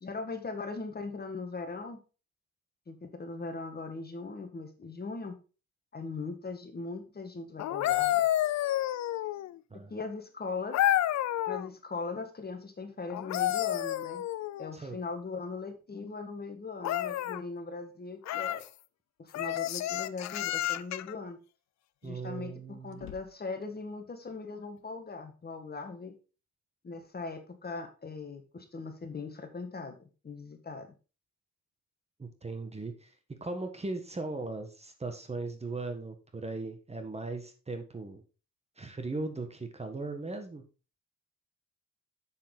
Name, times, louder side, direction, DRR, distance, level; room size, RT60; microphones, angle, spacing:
voice 1, 0.0-2.0 2.9-5.3 5.9-8.3 9.9-10.8 11.5-14.2 14.6-18.6 19.2-21.4 22.0-26.1 26.8-30.0 30.2-30.9, left 3 dB, 30° left, 6 dB, 1.8 m, -39 dB
sound 1, 7.6-9.6 10.7-11.7 13.1-14.7 16.8-17.4 18.2-18.7 19.3-21.1 23.0-23.2, left 13 dB, 65° left, 0.6 m, -30 dB
voice 2, 22.0-23.1 32.2-33.1 33.4-38.2 38.8-40.6, right 3 dB, 20° right, 6 dB, 1.5 m, -38 dB
7.4 x 6.5 x 3.9 m, 0.33 s
cardioid pair, 90°, 30 cm